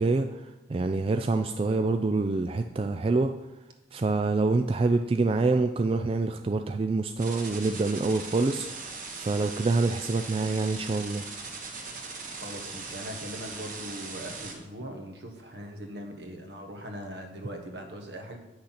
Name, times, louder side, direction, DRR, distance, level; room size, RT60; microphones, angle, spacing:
voice 1, 0.0-3.3 3.9-11.2, right 3 dB, 30° right, 7 dB, 0.3 m, -26 dB
sound 1, 7.2-14.5, right 4 dB, 45° right, 1.6 m, -40 dB
voice 2, 12.3-18.4, equal, 65° right, 4 dB, 1.5 m, -40 dB
8.6 x 6.4 x 5.8 m, 1.0 s
head